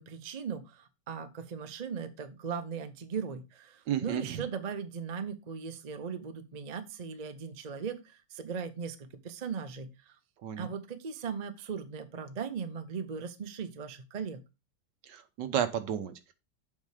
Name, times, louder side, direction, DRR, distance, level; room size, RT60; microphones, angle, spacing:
voice 1, 0.0-10.1 10.6-14.4, right 6 dB, 50° right, 0.4 m, -38 dB
voice 2, 3.9-4.4 10.4-10.7 15.1-16.3, right 9 dB, 70° right, 1.5 m, -32 dB
7.4 x 4.8 x 4.9 m
omnidirectional pair, 2.0 m